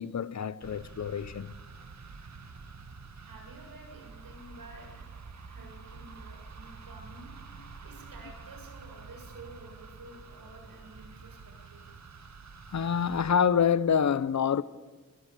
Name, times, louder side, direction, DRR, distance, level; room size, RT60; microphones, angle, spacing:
voice 1, 0.0-1.5 12.7-14.6, left 7 dB, 55° left, 0.9 m, -26 dB
sound 1, 0.6-13.3, right 4 dB, 55° right, 2.1 m, -48 dB
voice 2, 3.2-5.1 5.4-7.3 7.8-11.8, right 2 dB, 80° right, 7.8 m, -50 dB
26.5 x 22.0 x 8.5 m
wide cardioid pair, 110°, 33 cm